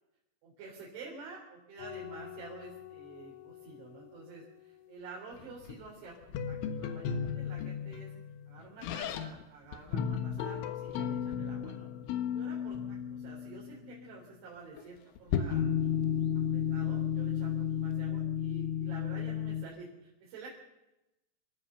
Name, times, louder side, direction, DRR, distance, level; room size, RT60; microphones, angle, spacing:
voice 1, 0.4-8.1 8.5-11.9 12.3-15.7 16.5-20.6, right 4 dB, 80° right, -4 dB, 6.2 m, -49 dB
sound 1, 1.8-4.5 5.4-9.4 9.7-14.2 14.8-14.9 15.2-19.7, left 8 dB, 85° left, 3.9 m, -34 dB
27.5 x 14.0 x 6.8 m, 0.95 s
omnidirectional pair, 5.4 m